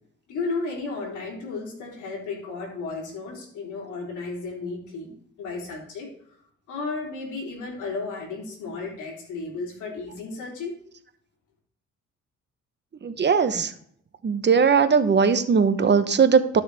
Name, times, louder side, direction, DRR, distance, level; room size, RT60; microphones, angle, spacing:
voice 1, 0.3-6.1 6.7-10.7, left 3 dB, 80° left, -1 dB, 3.7 m, -33 dB
voice 2, 13.0-13.7 14.2-16.6, right 6 dB, 35° right, 10 dB, 1.0 m, -19 dB
12.5 x 6.4 x 3.5 m, 0.64 s
cardioid pair, 90°, 30 cm